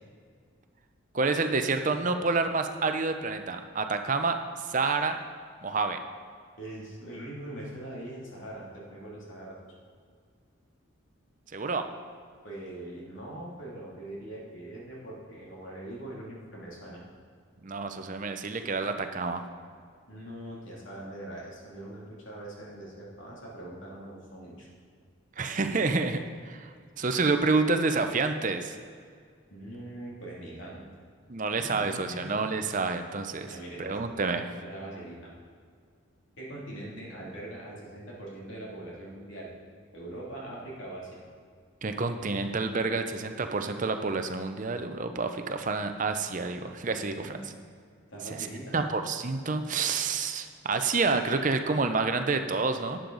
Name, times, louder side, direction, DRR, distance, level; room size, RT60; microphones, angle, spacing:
voice 1, 1.1-5.2 5.6-6.0 11.5-11.8 17.6-19.4 25.4-28.8 31.3-34.4 41.8-47.4 48.7-53.0, right 4 dB, 40° right, 7 dB, 0.6 m, -28 dB
voice 2, 6.6-9.6 12.4-17.0 20.1-24.7 29.5-30.8 31.6-32.4 33.5-34.0 34.6-35.3 36.4-39.5 39.9-41.2 46.9-47.4 48.1-48.8, right 1 dB, 65° left, -5 dB, 2.7 m, -42 dB
11.5 x 8.9 x 4.0 m, 2.1 s
head